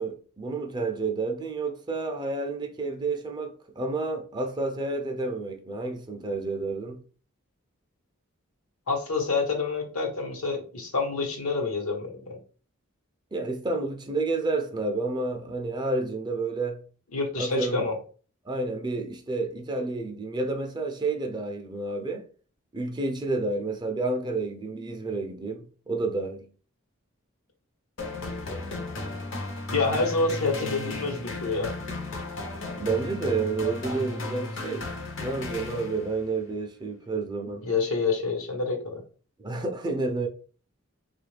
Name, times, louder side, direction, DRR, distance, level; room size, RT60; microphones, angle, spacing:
voice 1, 0.0-7.0 13.3-16.8 17.4-17.9 18.5-22.2 22.7-26.5 32.8-34.9 35.2-37.6 39.4-40.3, right 3 dB, 20° right, 0.4 m, -30 dB
voice 2, 8.9-12.4 17.1-17.9 29.7-31.7 37.6-39.0, left 4 dB, 90° left, 1.0 m, -27 dB
sound 1, 28.0-36.3, left 2 dB, 60° left, 0.7 m, -34 dB
3.5 x 2.4 x 3.2 m
head